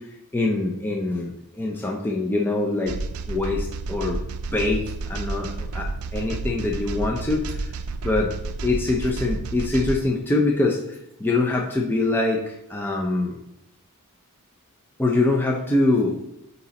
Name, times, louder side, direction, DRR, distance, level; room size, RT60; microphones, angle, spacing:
voice 1, 0.3-2.9 3.3-4.2 4.5-7.7 8.0-8.3 8.6-13.4 15.0-16.2, left 2 dB, 10° left, -1 dB, 0.4 m, -24 dB
sound 1, 2.9-10.0, right 3 dB, 70° right, 0.4 m, -30 dB
8.2 x 2.8 x 4.0 m, 0.83 s
head